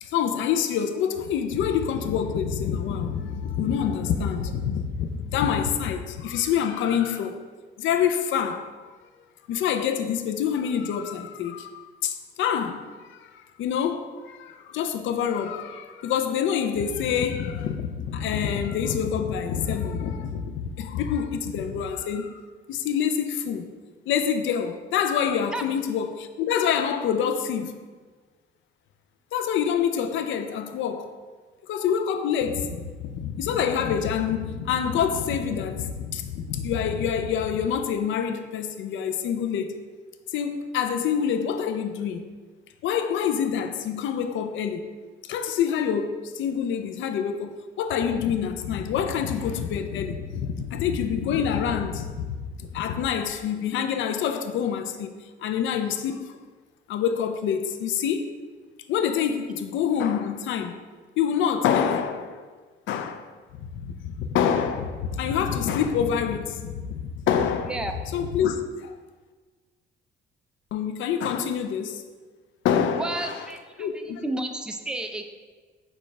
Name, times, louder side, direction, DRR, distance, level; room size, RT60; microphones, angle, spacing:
voice 1, 0.0-7.4 7.8-8.9 9.5-22.4 22.7-23.7 24.1-27.7 29.3-31.1 31.6-39.8 40.3-42.2 42.8-44.8 45.2-55.1 55.4-56.4 56.9-58.3 58.9-60.8 61.2-62.4 62.9-63.3 63.6-67.8 68.1-68.9 70.7-72.0 72.6-73.5 73.8-74.2, left 8 dB, 75° left, 0.4 m, -26 dB
voice 2, 73.0-75.2, right 2 dB, 5° right, 0.3 m, -32 dB
6.3 x 2.3 x 3.1 m
cardioid pair, 90°, 20 cm